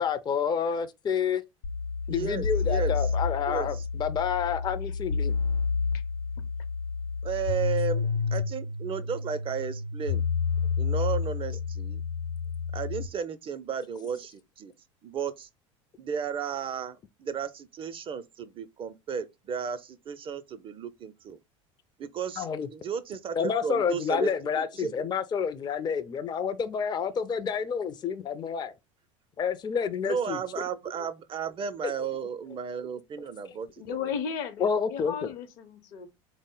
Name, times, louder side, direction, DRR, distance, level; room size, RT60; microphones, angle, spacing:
voice 1, 0.0-1.4 2.1-5.4 22.4-22.7 23.4-28.7 29.4-30.4 31.8-31.9 34.6-35.3, left 7 dB, 25° left, 0.4 m, -29 dB
sound 1, 1.6-13.1, left 5 dB, 85° left, 0.4 m, -30 dB
voice 2, 2.1-2.9 3.5-3.7 7.2-10.2 10.8-12.0 12.7-14.7 15.0-15.5 16.0-21.4 22.0-24.9 30.0-34.0, right 7 dB, 35° right, 0.4 m, -34 dB
voice 3, 33.8-34.6 34.9-36.1, left 7 dB, 55° left, 0.7 m, -34 dB
3.7 x 2.0 x 3.6 m
hypercardioid pair, 75°, 17 cm